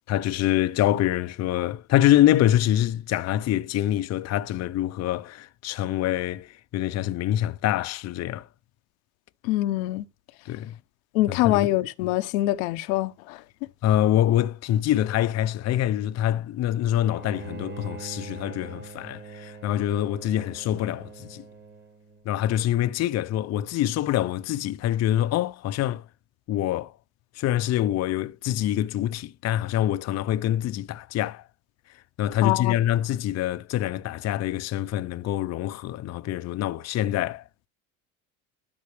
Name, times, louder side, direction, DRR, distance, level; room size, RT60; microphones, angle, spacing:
voice 1, 0.1-8.5 10.5-10.8 11.3-11.7 13.8-21.4 22.3-26.0 26.5-26.9 27.4-31.4 32.2-37.4, left 12 dB, 40° left, 0.6 m, -25 dB
voice 2, 9.4-10.0 11.1-13.4 32.4-32.8, left 16 dB, 75° left, 0.9 m, -24 dB
Bowed string instrument, 17.0-22.2, right 4 dB, 25° right, 1.9 m, -42 dB
12.5 x 5.3 x 3.3 m
hypercardioid pair, 85°, 41 cm